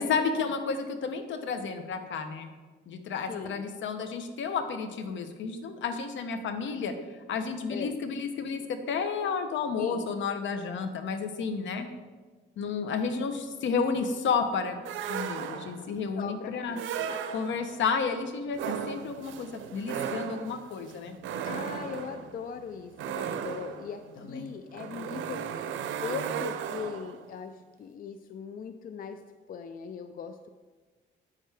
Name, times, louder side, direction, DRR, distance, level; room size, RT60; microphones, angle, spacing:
voice 1, 0.0-2.5 2.9-6.9 7.3-11.9 12.6-14.8 15.1-16.8 17.3-21.2 24.2-24.5, left 5 dB, 70° left, 8 dB, 0.8 m, -31 dB
voice 2, 3.3-3.6 7.7-8.0 9.7-10.1 16.2-17.1 21.4-25.7 26.0-29.2 29.5-30.5, left 6 dB, 45° left, 9 dB, 0.4 m, -40 dB
sound 1, 14.8-15.9 16.7-17.8 18.5-27.2, right 8 dB, 75° right, 0.6 m, -36 dB
8.5 x 6.6 x 3.4 m, 1.4 s
cardioid pair, 90°, 20 cm